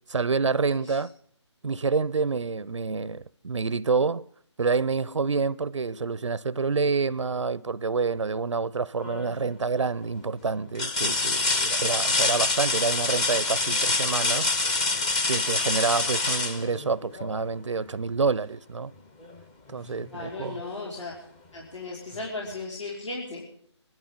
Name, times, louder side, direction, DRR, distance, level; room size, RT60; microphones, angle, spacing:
voice 1, 0.1-1.1 1.6-4.2 4.6-14.5 15.3-18.9 19.7-20.6, right 4 dB, 85° right, 0.5 m, -27 dB
sound 1, 9.0-9.5 10.0-10.1 10.7-17.4 19.2-19.3 19.8-20.8 22.2-22.3, left 3 dB, 15° left, 0.6 m, -26 dB
voice 2, 19.8-21.1 21.5-23.4, left 3 dB, 80° left, 5.1 m, -36 dB
25.0 x 12.0 x 3.8 m
figure-of-eight pair, 155°, 15 cm